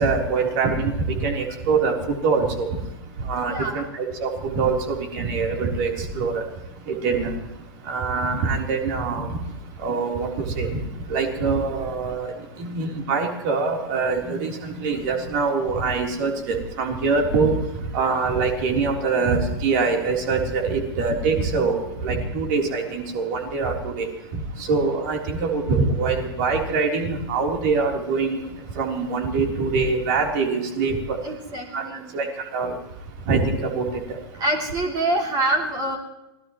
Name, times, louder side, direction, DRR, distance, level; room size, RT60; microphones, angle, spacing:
voice 1, 0.0-2.7 3.2-6.4 6.9-7.3 7.9-9.4 9.8-10.8 11.1-12.3 12.6-17.5 17.9-24.1 24.3-28.4 28.8-31.2 31.7-31.8 32.1-32.3 32.5-32.7 33.3-34.2, right 4 dB, 50° right, 2 dB, 3.6 m, -24 dB
voice 2, 3.5-3.9 31.2-32.2 34.4-36.0, right 1 dB, 30° right, 1 dB, 3.2 m, -25 dB
26.0 x 18.0 x 3.1 m, 0.93 s
figure-of-eight pair, 105°, 13 cm